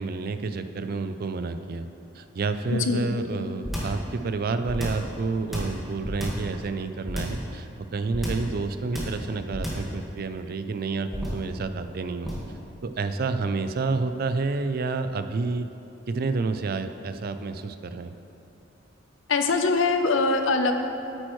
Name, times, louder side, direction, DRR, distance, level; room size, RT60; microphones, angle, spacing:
voice 1, 0.0-1.9 2.1-12.3 12.8-15.7 16.1-18.1, right 3 dB, 50° right, 10 dB, 0.4 m, -29 dB
sound 1, 3.6-4.0 4.6-5.1 5.5-6.5 7.1-7.4 8.1-8.5 8.9-9.2 9.5-9.9 11.1-11.5 12.2-12.5, equal, ahead, 1.7 m, -31 dB
voice 2, 19.3-20.7, left 3 dB, 80° left, 6 dB, 0.7 m, -22 dB
8.8 x 8.8 x 3.2 m, 2.8 s
head